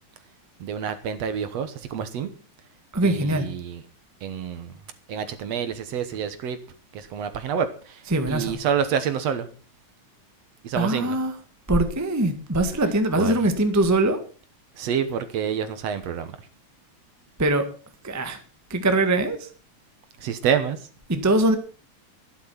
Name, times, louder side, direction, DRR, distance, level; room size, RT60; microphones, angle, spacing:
voice 1, 0.6-2.3 3.0-3.8 4.2-4.7 5.1-6.6 6.9-8.0 8.3-9.5 10.6-11.2 13.2-13.3 14.8-16.3 20.2-20.8, right 7 dB, 65° right, 2.2 m, -27 dB
voice 2, 2.9-3.5 8.1-8.6 10.7-11.4 11.7-14.2 17.4-17.7 18.0-18.4 18.7-19.5 21.1-21.5, right 2 dB, 10° right, 0.9 m, -22 dB
12.5 x 11.5 x 5.8 m
omnidirectional pair, 3.4 m